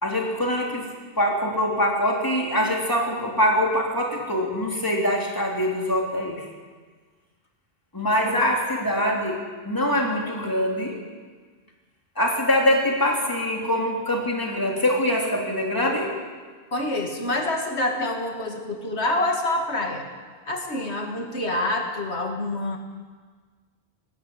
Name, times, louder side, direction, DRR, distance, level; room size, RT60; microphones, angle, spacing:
voice 1, 0.0-0.9 1.2-6.5 7.9-11.0 12.2-16.1, left 1 dB, 20° left, -1 dB, 3.5 m, -24 dB
voice 2, 16.7-20.1 20.5-22.8, left 1 dB, 90° left, 2 dB, 2.3 m, -27 dB
19.0 x 15.0 x 9.2 m, 1.5 s
omnidirectional pair, 1.1 m